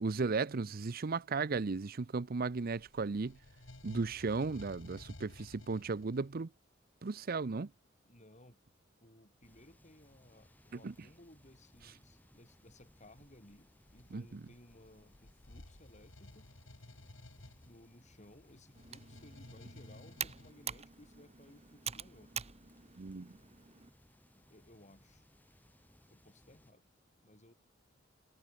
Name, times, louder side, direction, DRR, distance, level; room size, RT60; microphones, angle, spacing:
voice 1, 0.0-3.4 3.8-6.5 7.0-7.7 10.8-10.9 14.1-14.2 23.0-23.3, right 4 dB, 50° right, 0.6 m, -35 dB
sound 1, 2.3-6.4 11.7-11.9 12.7-20.5, left 1 dB, 70° left, 2.3 m, -55 dB
voice 2, 8.0-8.6 9.0-16.5 17.6-22.3 24.4-25.3 26.1-26.9 27.2-27.5, left 1 dB, 35° left, 6.1 m, -60 dB
sound 2, 9.4-26.7, equal, 10° left, 5.6 m, -66 dB
Computer keyboard, 18.7-23.9, right 8 dB, 35° right, 1.6 m, -46 dB
head